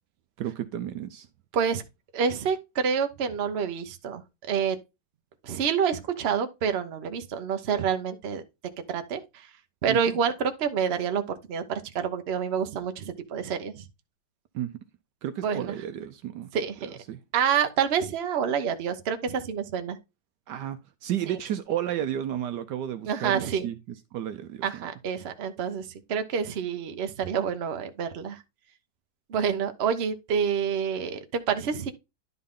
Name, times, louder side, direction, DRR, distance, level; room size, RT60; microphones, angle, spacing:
voice 1, 0.4-1.3 9.9-10.0 14.5-14.7 15.2-16.5 17.1-17.2 20.5-24.8, right 11 dB, 75° right, 1.2 m, -32 dB
voice 2, 2.1-4.2 4.5-4.8 5.4-8.4 8.9-9.5 9.8-11.2 11.5-13.8 15.4-15.7 16.5-17.0 17.3-20.0 23.0-23.7 24.6-28.4 29.3-31.9, right 7 dB, 45° right, 0.9 m, -28 dB
11.0 x 4.0 x 3.6 m
omnidirectional pair, 1.9 m